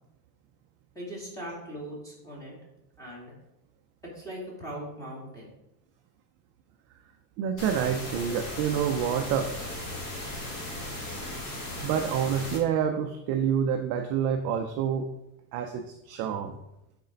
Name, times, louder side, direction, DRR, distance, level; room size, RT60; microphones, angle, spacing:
voice 1, 0.9-2.6 3.0-3.3 4.0-5.5, equal, 5° left, -5 dB, 2.3 m, -40 dB
voice 2, 7.4-9.5 11.8-15.1 15.5-16.5, right 8 dB, 35° right, 5 dB, 0.4 m, -27 dB
sound 1, 7.6-12.6, left 1 dB, 40° left, 2.2 m, -37 dB
7.9 x 4.3 x 5.1 m, 0.89 s
cardioid pair, 165°, 46 cm